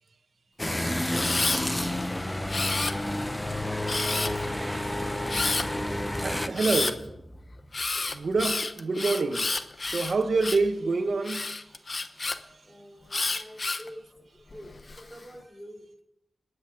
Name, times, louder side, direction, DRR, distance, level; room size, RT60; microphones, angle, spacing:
sound 1, 0.6-6.5, left 1 dB, 15° left, 1.0 m, -30 dB
Camera, 1.2-1.6 2.5-3.3 3.9-4.5 5.3-5.7 6.5-6.9 7.7-10.7 11.2-12.4 13.1-13.9 14.5-15.0, left 3 dB, 55° left, 0.9 m, -30 dB
sound 2, 3.8-8.7, equal, 20° right, 3.1 m, -43 dB
voice 1, 6.2-7.1 8.1-9.5 9.9-11.6 12.4-12.6, right 3 dB, 75° right, 1.4 m, -27 dB
voice 2, 12.7-15.9, equal, ahead, 5.3 m, -47 dB
26.5 x 9.7 x 3.7 m
cardioid pair, 50°, 0 cm